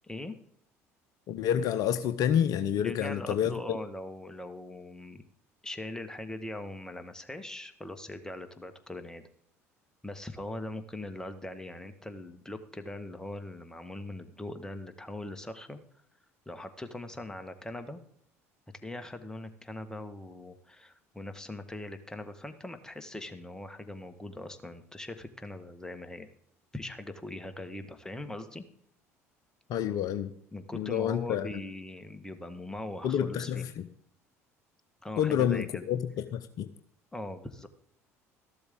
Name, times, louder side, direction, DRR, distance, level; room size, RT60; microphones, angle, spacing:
voice 1, 0.0-0.3 2.8-5.2 5.6-9.2 10.0-15.8 16.4-18.0 18.8-26.3 26.7-28.6 30.5-33.6 35.0-35.8 37.1-37.7, left 1 dB, 10° left, 8 dB, 1.5 m, -41 dB
voice 2, 1.3-3.5 29.7-30.3 30.7-31.5 33.0-33.8 35.2-36.0 36.3-36.7, left 9 dB, 55° left, 11 dB, 0.7 m, -28 dB
14.0 x 12.0 x 3.7 m, 0.68 s
figure-of-eight pair, 60°, 8 cm